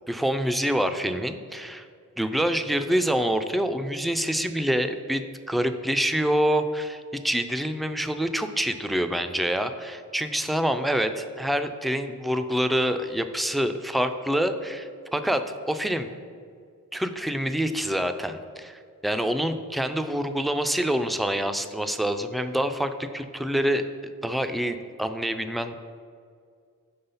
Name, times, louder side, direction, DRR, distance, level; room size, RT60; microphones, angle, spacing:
voice 1, 0.1-1.9 2.2-16.1 16.9-23.8 24.2-25.7, equal, ahead, 9 dB, 0.3 m, -26 dB
5.5 x 3.6 x 5.5 m, 2.1 s
cardioid pair, 50°, 34 cm